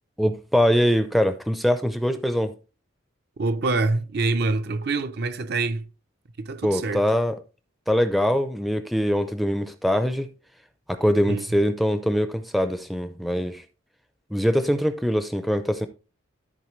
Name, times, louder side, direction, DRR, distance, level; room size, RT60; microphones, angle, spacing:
voice 1, 0.2-2.5 6.6-7.4 7.9-10.3 10.9-13.6 14.3-15.9, equal, ahead, 0.5 m, -23 dB
voice 2, 3.4-5.8 6.4-7.1 11.3-11.5, right 3 dB, 50° right, 0.6 m, -25 dB
13.5 x 4.5 x 3.1 m
head